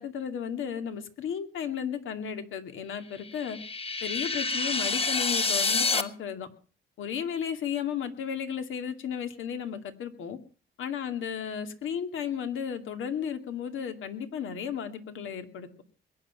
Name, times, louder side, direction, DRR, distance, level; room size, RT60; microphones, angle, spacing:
voice 1, 0.0-3.6 4.0-6.5 7.0-10.4 10.8-15.8, left 8 dB, 75° left, 8 dB, 2.4 m, -34 dB
sound 1, 3.2-6.0, left 4 dB, 30° left, 1.3 m, -28 dB
22.0 x 9.7 x 5.7 m, 0.40 s
cardioid pair, 110°, 21 cm